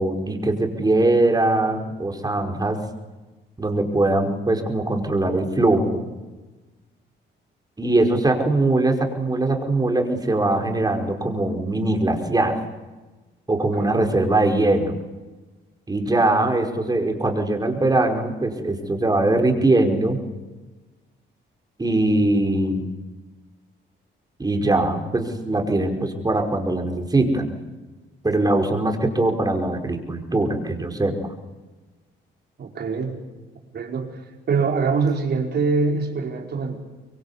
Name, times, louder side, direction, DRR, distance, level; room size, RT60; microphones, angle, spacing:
voice 1, 0.0-2.8 3.6-6.1 7.8-12.5 13.5-14.9 15.9-20.2 21.8-22.9 24.4-27.6 28.2-31.1, right 2 dB, 20° right, 3 dB, 5.2 m, -21 dB
voice 2, 32.6-33.2 33.7-34.2 34.5-36.8, right 4 dB, 55° right, 2 dB, 5.0 m, -24 dB
25.0 x 23.0 x 8.4 m, 1.2 s
cardioid pair, 90°, 20 cm